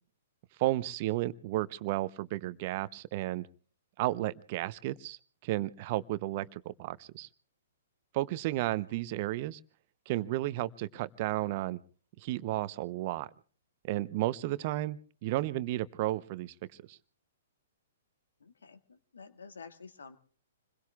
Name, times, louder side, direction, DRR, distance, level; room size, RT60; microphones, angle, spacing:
voice 1, 0.6-3.5 4.0-7.3 8.1-9.6 10.1-11.8 12.2-13.3 13.8-16.5 16.9-17.0, right 16 dB, 45° right, 17 dB, 0.7 m, -33 dB
voice 2, 18.4-20.2, left 5 dB, 75° left, 8 dB, 1.8 m, -50 dB
28.0 x 21.5 x 2.4 m, 0.43 s
figure-of-eight pair, 115°, 0 cm